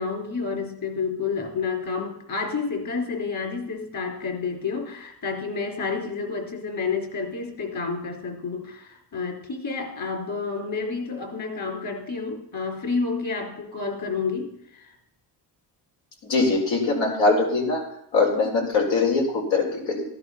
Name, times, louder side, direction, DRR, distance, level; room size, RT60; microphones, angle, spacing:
voice 1, 0.0-14.9, left 4 dB, 50° left, 3 dB, 4.7 m, -30 dB
voice 2, 16.3-17.8 18.1-20.0, left 3 dB, 85° left, 1 dB, 4.9 m, -22 dB
16.0 x 11.0 x 6.0 m, 0.76 s
cardioid pair, 95°, 43 cm